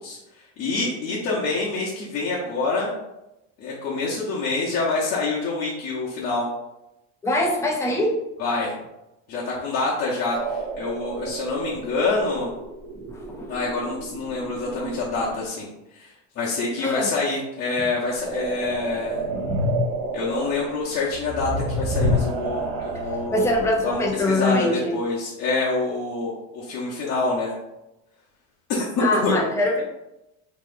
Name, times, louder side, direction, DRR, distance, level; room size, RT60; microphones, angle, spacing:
voice 1, 0.0-2.9 3.6-6.5 8.4-8.7 9.3-12.5 13.5-19.2 20.1-27.5 28.7-29.3, left 3 dB, 40° left, -7 dB, 0.9 m, -26 dB
voice 2, 7.2-8.2 12.9-13.5 16.8-17.1 23.3-24.9 29.0-29.8, left 1 dB, 10° left, -1 dB, 0.3 m, -23 dB
sound 1, 10.3-15.4 18.0-24.3, equal, 75° right, 1.2 m, -30 dB
6.0 x 2.8 x 2.5 m, 0.93 s
cardioid pair, 165°, 38 cm